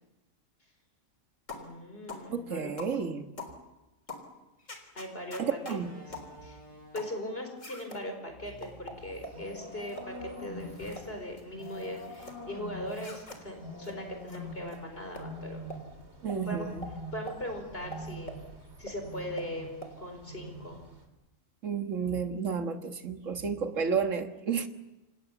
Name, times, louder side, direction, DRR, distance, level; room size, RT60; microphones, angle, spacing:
sound 1, 1.5-1.7 2.1-2.3 2.8-3.0 3.4-3.6 4.1-4.3 4.7-5.8 6.1-6.3 7.0-7.2 7.6-8.0 8.6-9.4 9.9-10.1 10.6-11.1 11.4-12.4 12.9-13.4 13.8-14.0 14.3-14.4 14.7-14.8 15.2-15.3 15.7-15.8 16.3-16.4 16.8-16.9 17.3-17.4 17.9-18.4 18.9-19.0 19.4-19.5 19.8-19.9, left 1 dB, 80° left, 4.2 m, -44 dB
voice 1, 1.5-2.7 4.9-5.8 6.0-6.6 6.9-15.7 16.5-16.7 17.1-18.4 18.8-20.8, left 1 dB, 50° left, 5.0 m, -40 dB
voice 2, 2.3-3.2 5.4-5.9 16.2-16.9 21.6-24.7, right 6 dB, 80° right, 1.9 m, -31 dB
Slam, 4.6-4.8 5.7-7.2 8.3-9.7 10.0-10.1 10.8-11.4, equal, 30° left, 7.8 m, -53 dB
sound 2, 9.0-21.0, equal, 60° right, 3.8 m, -45 dB
28.0 x 27.5 x 7.1 m
omnidirectional pair, 1.3 m